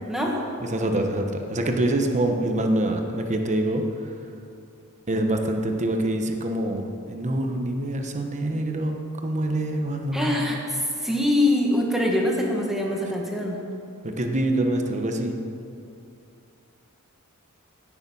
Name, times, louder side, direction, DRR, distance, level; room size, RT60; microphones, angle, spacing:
voice 1, 0.1-0.4 10.1-13.6, left 1 dB, ahead, -2 dB, 1.6 m, -24 dB
voice 2, 0.7-3.8 5.1-9.0 9.2-10.5 14.0-15.3, right 1 dB, 35° right, 4 dB, 1.0 m, -25 dB
16.5 x 6.9 x 5.5 m, 2.5 s
head